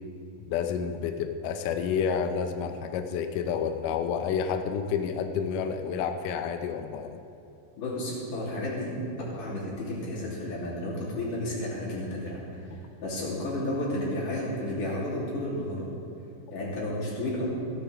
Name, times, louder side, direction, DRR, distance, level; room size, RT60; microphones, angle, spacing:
voice 1, 0.5-7.2, left 7 dB, 85° left, 6 dB, 1.9 m, -29 dB
voice 2, 7.8-9.0 9.3-12.6 13.0-15.9 16.5-17.5, left 1 dB, 60° left, -6 dB, 4.4 m, -32 dB
16.0 x 13.5 x 3.4 m, 2.6 s
omnidirectional pair, 4.5 m